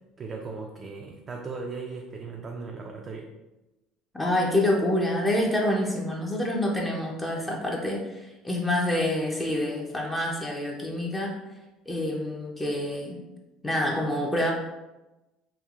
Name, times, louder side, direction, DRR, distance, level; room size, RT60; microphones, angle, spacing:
voice 1, 0.2-3.3, right 4 dB, 35° right, 1 dB, 0.3 m, -37 dB
voice 2, 4.1-11.4 11.9-13.2 13.6-14.5, left 1 dB, 15° left, -1 dB, 0.6 m, -27 dB
3.2 x 2.2 x 2.4 m, 1.0 s
hypercardioid pair, 80°, 0 cm